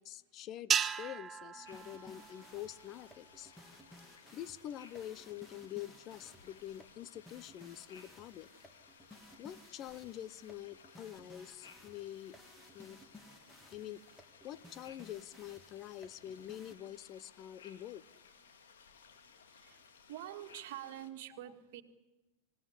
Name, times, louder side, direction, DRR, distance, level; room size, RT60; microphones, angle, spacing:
voice 1, 0.0-3.5 4.3-8.5 9.4-12.4 12.7-13.0 13.7-14.0 14.4-18.1 21.5-21.6, left 12 dB, 35° left, 19 dB, 0.8 m, -46 dB
sound 1, 0.7-3.1, right 7 dB, 20° right, 0.8 m, -36 dB
sound 2, 1.6-21.1, left 6 dB, 65° left, 2.4 m, -60 dB
sound 3, 1.6-16.8, left 1 dB, 5° left, 2.1 m, -59 dB
voice 2, 20.1-21.8, right 12 dB, 50° right, 5 dB, 1.9 m, -46 dB
27.0 x 17.0 x 9.9 m, 1.1 s
figure-of-eight pair, 90°, 0 cm